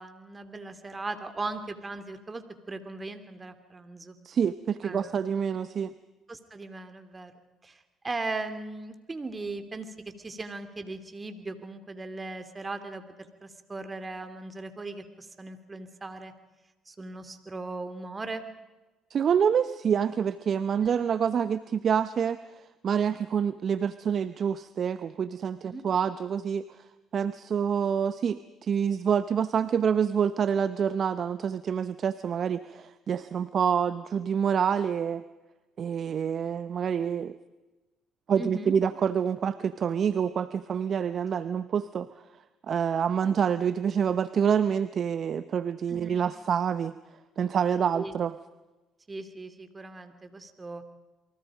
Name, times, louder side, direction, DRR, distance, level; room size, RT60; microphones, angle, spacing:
voice 1, 0.0-4.2 4.8-5.1 6.3-7.3 7.6-16.3 16.9-18.5 20.8-20.9 25.6-25.9 38.3-38.7 45.9-46.2 47.9-48.2 49.1-50.8, right 3 dB, 25° right, 9 dB, 3.2 m, -38 dB
voice 2, 4.2-5.9 19.1-22.4 22.8-26.6 27.1-35.2 35.8-37.4 38.3-42.1 42.7-46.9 47.4-48.4, right 7 dB, 55° right, 13 dB, 0.9 m, -27 dB
28.5 x 23.5 x 5.2 m, 1.1 s
supercardioid pair, 65°, 0 cm